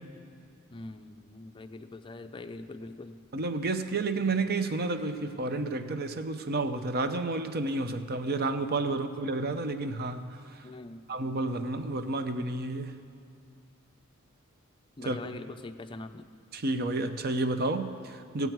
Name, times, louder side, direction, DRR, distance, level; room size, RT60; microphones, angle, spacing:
voice 1, 0.7-3.2 8.9-9.0 10.6-11.0 15.0-16.3, left 2 dB, 25° left, 9 dB, 0.4 m, -43 dB
voice 2, 3.3-10.3 11.1-13.0 15.0-15.2 16.5-18.5, right 2 dB, 50° right, 9 dB, 0.6 m, -30 dB
18.0 x 8.0 x 4.6 m, 2.3 s
head